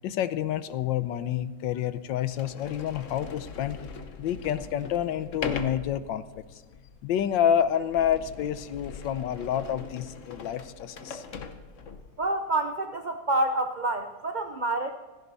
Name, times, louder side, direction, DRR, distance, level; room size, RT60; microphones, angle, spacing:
voice 1, 0.0-3.8 4.2-6.2 6.5-6.6 7.0-11.2, left 9 dB, 90° left, 13 dB, 1.4 m, -28 dB
Sliding door, 0.9-1.0 1.7-1.8 2.3-12.2, left 5 dB, 50° left, 1.2 m, -41 dB
voice 2, 12.2-14.9, right 2 dB, 65° right, 6 dB, 0.4 m, -28 dB
17.0 x 15.0 x 4.1 m, 1.3 s
omnidirectional pair, 2.0 m